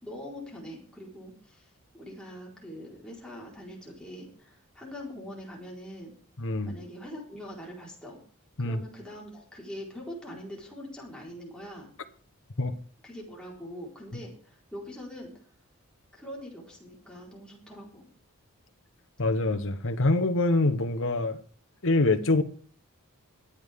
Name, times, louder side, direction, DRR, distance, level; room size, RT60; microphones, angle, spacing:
voice 1, 0.0-6.1 6.6-8.2 8.6-11.9 13.0-15.4 16.1-18.1, equal, 5° left, 4.3 m, -43 dB
voice 2, 6.4-6.7 8.6-8.8 12.6-12.7 19.2-21.4 21.8-22.4, left 2 dB, 60° left, 1.1 m, -25 dB
22.0 x 8.4 x 3.6 m
head